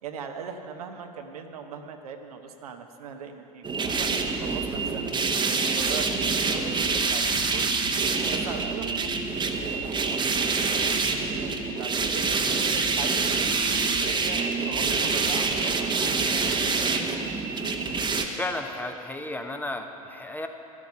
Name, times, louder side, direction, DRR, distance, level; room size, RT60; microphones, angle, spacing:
voice 1, 0.0-7.2 7.5-7.7 8.3-9.3 9.6-12.3 12.5-13.5 13.8-16.9 17.5-17.6, right 6 dB, 75° right, 5 dB, 1.0 m, -41 dB
sound 1, 3.6-18.2, right 4 dB, 25° right, 1.1 m, -26 dB
voice 2, 18.4-20.5, left 2 dB, 10° left, 5 dB, 0.9 m, -33 dB
12.0 x 12.0 x 5.5 m, 2.8 s
hypercardioid pair, 80°, 19 cm